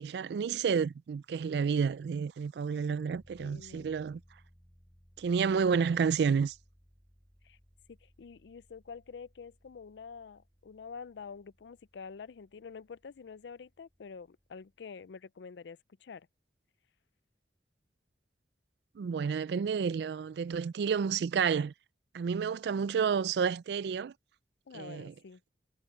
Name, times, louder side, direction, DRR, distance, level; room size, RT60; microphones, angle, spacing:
voice 1, 0.0-4.2 5.2-6.5 19.0-21.7 22.1-24.1 24.7-25.1, right 6 dB, 70° right, 0.3 m, -30 dB
sound 1, 3.1-15.0, equal, 10° right, 5.8 m, -64 dB
voice 2, 3.4-3.9 7.4-7.6 7.9-16.3 24.7-25.4, left 5 dB, 85° left, 0.4 m, -47 dB
head